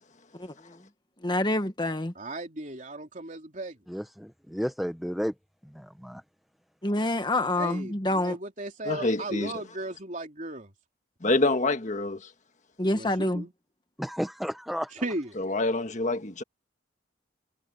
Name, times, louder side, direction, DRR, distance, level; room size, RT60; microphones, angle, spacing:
voice 1, 1.2-2.1 6.8-8.4 12.8-13.5, left 1 dB, 25° left, 1.3 m, -27 dB
voice 2, 2.1-3.8 7.6-10.7 12.9-13.5 15.0-15.3, right 2 dB, 40° right, 3.4 m, -36 dB
voice 3, 3.9-5.3 5.6-6.2 14.0-14.9, equal, ahead, 0.8 m, -32 dB
voice 4, 8.8-9.5 11.2-12.3 15.4-16.4, left 2 dB, 40° left, 1.6 m, -26 dB
head